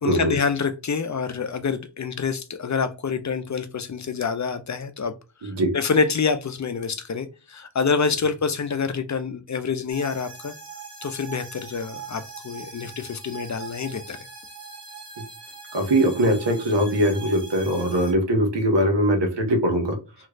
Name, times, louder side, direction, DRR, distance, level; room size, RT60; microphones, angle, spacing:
voice 1, 0.0-5.1 5.4-10.5 11.0-14.3, left 5 dB, 45° left, 0.5 m, -27 dB
voice 2, 5.4-5.7 15.7-20.0, right 1 dB, 75° right, 1.4 m, -21 dB
sound 1, 9.9-18.1, right 5 dB, 10° right, 1.4 m, -41 dB
3.2 x 3.1 x 2.4 m
cardioid pair, 60°, 43 cm